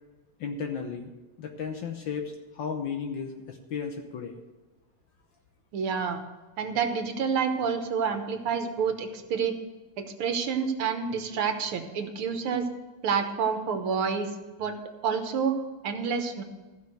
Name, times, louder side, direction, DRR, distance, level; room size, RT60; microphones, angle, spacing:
voice 1, 0.4-1.1 1.4-4.4, left 6 dB, 65° left, 3 dB, 1.6 m, -34 dB
voice 2, 5.7-6.2 6.6-9.6 10.0-12.7 13.0-14.3 14.6-14.8 15.0-15.6 15.8-16.4, right 6 dB, 85° right, 6 dB, 2.1 m, -28 dB
15.0 x 5.8 x 7.8 m, 1.2 s
omnidirectional pair, 2.3 m